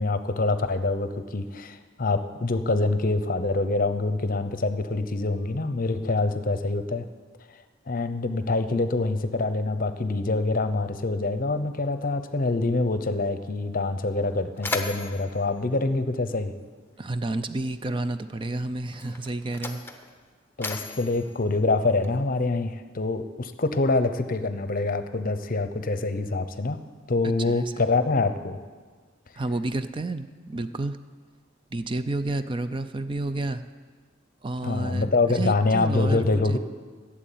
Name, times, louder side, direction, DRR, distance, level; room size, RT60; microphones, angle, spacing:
voice 1, 0.0-7.0 7.9-16.5 20.6-26.8 27.1-28.6 34.6-36.6, left 3 dB, 45° left, 10 dB, 0.7 m, -25 dB
Mechanisms, 13.7-13.8 14.1-16.8 17.8-18.0 18.8-22.4, left 3 dB, 10° left, 0.8 m, -37 dB
voice 2, 17.0-19.8 27.2-27.6 29.4-31.0 31.7-33.6 34.4-36.6, right 2 dB, 25° right, 11 dB, 0.4 m, -30 dB
13.0 x 7.4 x 9.1 m, 1.5 s
head